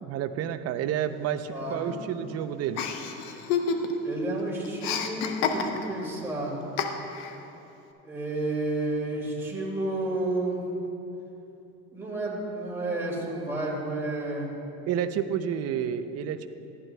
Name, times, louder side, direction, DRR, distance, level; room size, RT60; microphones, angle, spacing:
voice 1, 0.0-2.8 14.9-16.5, right 9 dB, 55° right, 11 dB, 0.6 m, -30 dB
voice 2, 1.5-2.0 4.0-6.6 8.0-10.6 11.9-14.5, right 2 dB, 10° right, -5 dB, 2.3 m, -31 dB
Chuckle chortle, 2.8-4.1 4.4-6.1 6.8-7.4, left 6 dB, 85° left, 0.8 m, -29 dB
15.0 x 11.0 x 2.3 m, 2.9 s
cardioid pair, 105°, 30 cm